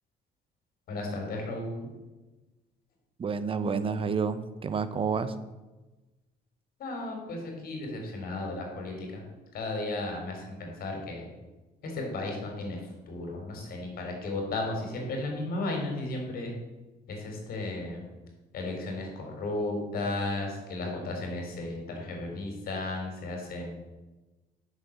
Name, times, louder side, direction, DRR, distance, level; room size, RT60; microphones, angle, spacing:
voice 1, 0.9-1.9 6.8-9.2 9.5-11.3 11.8-12.8 13.1-16.5 17.1-18.0 18.5-23.7, left 2 dB, 60° left, 1 dB, 3.6 m, -34 dB
voice 2, 3.2-5.3, right 5 dB, 30° right, 12 dB, 0.8 m, -29 dB
8.7 x 6.6 x 7.3 m, 1.1 s
cardioid pair, 110°, 17 cm